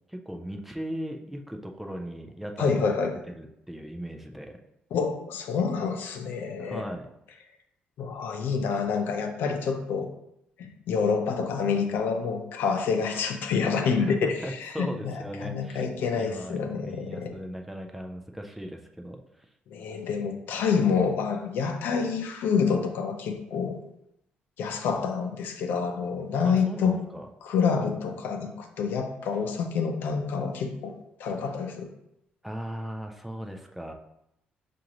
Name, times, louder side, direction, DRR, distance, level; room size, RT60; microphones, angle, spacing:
voice 1, 0.1-3.0 3.3-4.6 6.6-7.1 14.0-15.8 16.2-19.5 26.4-27.3 32.4-33.9, equal, 5° right, 4 dB, 0.4 m, -37 dB
voice 2, 2.6-3.1 4.9-6.8 8.0-10.1 10.6-14.3 14.6-15.2 15.4-17.3 19.7-23.8 24.6-27.0 27.4-30.9 31.2-31.9, left 5 dB, 75° left, 5 dB, 0.5 m, -27 dB
5.9 x 2.5 x 2.9 m, 0.81 s
cardioid pair, 125°, 3 cm